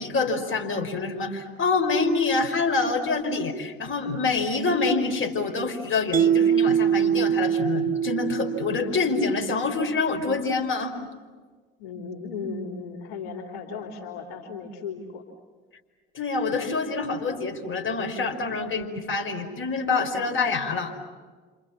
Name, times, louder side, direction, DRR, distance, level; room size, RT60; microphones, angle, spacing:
voice 1, 0.0-11.0 16.1-20.9, left 4 dB, 45° left, 5 dB, 5.0 m, -26 dB
Mallet percussion, 6.1-9.4, right 9 dB, 30° right, 0.7 m, -23 dB
voice 2, 11.8-15.2, left 5 dB, 80° left, 2 dB, 3.4 m, -36 dB
29.5 x 27.0 x 7.3 m, 1.4 s
hypercardioid pair, 65°, 29 cm